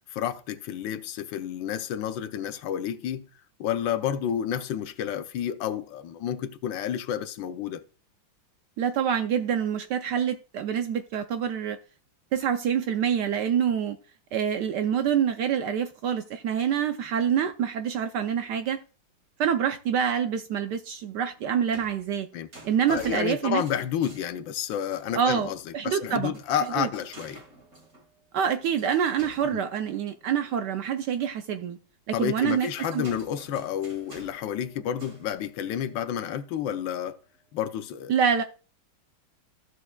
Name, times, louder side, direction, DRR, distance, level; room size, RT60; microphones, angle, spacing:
voice 1, 0.1-3.2 3.6-7.8 22.3-22.5 22.9-25.6 25.8-27.4 29.5-29.6 32.1-37.2 37.5-38.1, left 9 dB, 75° left, 1.2 m, -30 dB
voice 2, 8.8-11.8 12.3-14.0 14.3-18.8 19.4-22.3 22.6-23.6 25.1-25.5 25.7-26.3 26.8-26.9 28.3-31.8 32.1-33.0 38.1-38.4, right 8 dB, 75° right, 1.0 m, -26 dB
sound 1, 21.0-25.3 25.6-26.0 26.3-30.6 31.1-31.2 32.1-37.0 37.6-37.7, right 1 dB, 45° right, 2.4 m, -50 dB
14.5 x 6.4 x 2.2 m
omnidirectional pair, 2.3 m